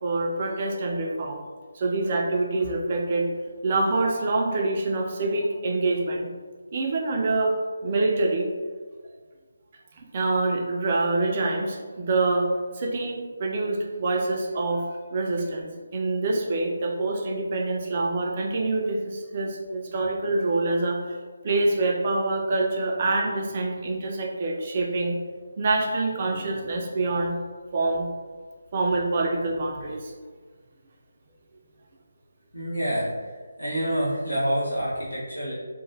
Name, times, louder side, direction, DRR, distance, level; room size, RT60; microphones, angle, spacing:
voice 1, 0.0-1.4 1.7-6.3 6.7-8.5 10.0-12.5 12.7-21.2 21.4-25.2 25.6-27.4 27.7-28.1 28.7-30.1, right 2 dB, 35° right, 0 dB, 0.4 m, -26 dB
voice 2, 32.5-33.3 33.6-35.5, equal, 85° left, -9 dB, 1.1 m, -27 dB
2.9 x 2.1 x 2.6 m, 1.5 s
figure-of-eight pair, 150°, 0 cm